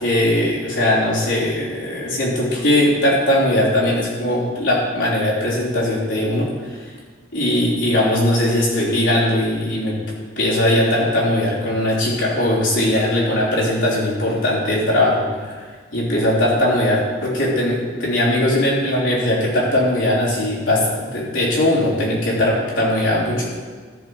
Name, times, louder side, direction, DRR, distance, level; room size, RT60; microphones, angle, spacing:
voice 1, 0.0-6.9 7.3-10.0 10.4-23.6, left 1 dB, 85° left, -6 dB, 3.4 m, -19 dB
13.5 x 4.7 x 7.0 m, 1.5 s
head